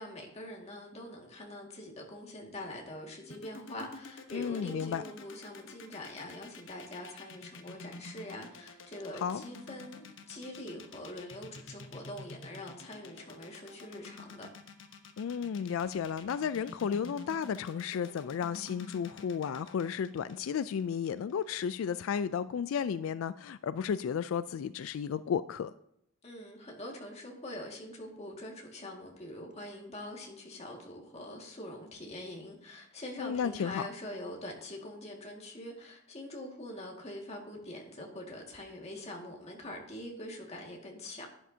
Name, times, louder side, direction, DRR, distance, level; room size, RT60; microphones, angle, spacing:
voice 1, 0.0-14.5 26.2-41.3, left 1 dB, 30° left, 0 dB, 1.9 m, -44 dB
sound 1, 3.3-21.4, left 3 dB, 65° left, 1.0 m, -49 dB
voice 2, 4.3-5.0 9.2-9.4 15.2-25.7 33.2-33.8, left 7 dB, 80° left, 14 dB, 0.3 m, -33 dB
11.0 x 10.0 x 2.8 m, 0.76 s
head